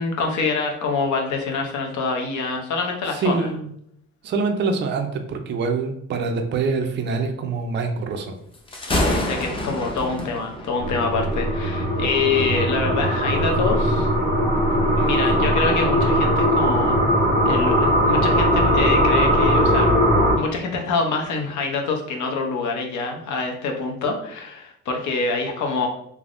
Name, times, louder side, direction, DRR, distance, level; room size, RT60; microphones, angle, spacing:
voice 1, 0.0-3.5 8.9-14.1 15.0-17.0 17.4-19.9 20.4-25.9, left 4 dB, 65° left, 2 dB, 0.7 m, -25 dB
voice 2, 3.1-3.7 4.2-8.4, right 4 dB, 35° right, 5 dB, 0.4 m, -25 dB
Thunder, 8.5-15.8, left 1 dB, 15° left, 0.5 m, -30 dB
sound 1, 10.8-20.4, equal, 50° left, 1.5 m, -19 dB
3.3 x 2.0 x 2.5 m, 0.71 s
cardioid pair, 110°, 31 cm